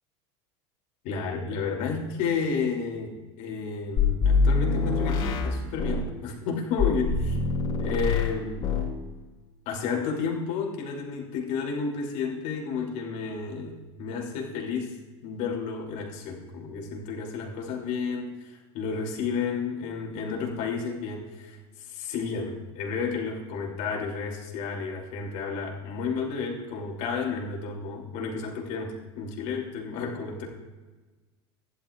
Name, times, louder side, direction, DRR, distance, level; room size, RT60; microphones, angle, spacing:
voice 1, 1.0-7.4 7.8-8.7 9.6-15.0 15.2-30.5, left 5 dB, 60° left, -1 dB, 3.0 m, -31 dB
sound 1, 4.0-6.1 6.8-8.4 8.6-9.0, left 4 dB, 35° left, 3.6 m, -24 dB
15.5 x 11.0 x 2.5 m, 1.2 s
hypercardioid pair, 80°, 15 cm